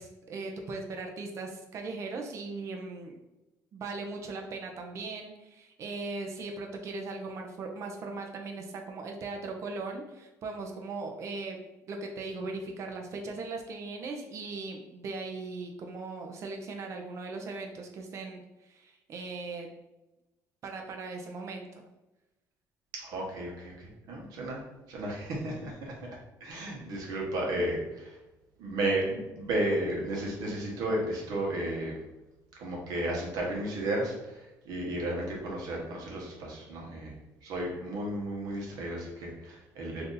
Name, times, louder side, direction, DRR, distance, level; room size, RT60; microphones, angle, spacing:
voice 1, 0.0-3.2 3.7-11.6 11.9-18.4 18.7-19.7 20.6-21.9, right 3 dB, 50° right, 2 dB, 0.5 m, -39 dB
voice 2, 22.9-24.6 24.9-26.0 26.4-28.2 28.6-31.9 32.6-37.1 37.4-40.1, right 1 dB, 80° right, -2 dB, 1.0 m, -33 dB
2.7 x 2.5 x 3.8 m, 1.0 s
cardioid pair, 135°, 7 cm